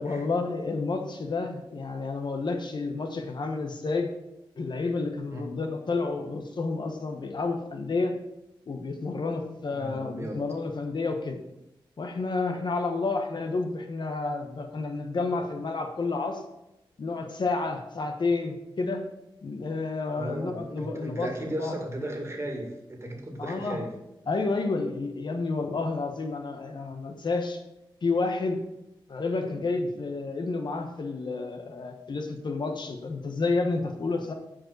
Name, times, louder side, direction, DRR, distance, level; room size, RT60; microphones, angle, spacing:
voice 1, 0.0-4.1 4.6-8.1 8.7-11.4 12.0-16.4 17.0-19.0 19.4-21.7 23.4-23.8 24.3-27.6 28.0-28.6 29.1-34.3, left 3 dB, 55° left, 5 dB, 1.2 m, -30 dB
voice 2, 9.7-10.4 20.2-23.9, right 1 dB, 30° right, 1 dB, 2.0 m, -36 dB
7.5 x 5.0 x 4.6 m, 0.89 s
cardioid pair, 60°, 9 cm